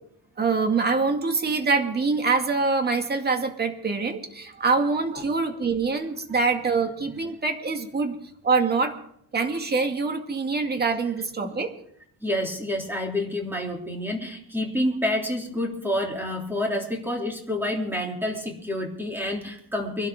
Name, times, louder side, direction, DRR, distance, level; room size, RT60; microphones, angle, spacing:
voice 1, 0.4-8.2 8.4-8.9 9.3-11.7, right 4 dB, 25° right, 4 dB, 2.2 m, -24 dB
voice 2, 12.2-20.1, left 1 dB, 5° right, 0 dB, 3.1 m, -28 dB
25.0 x 12.5 x 3.7 m, 0.67 s
cardioid pair, 180°, 38 cm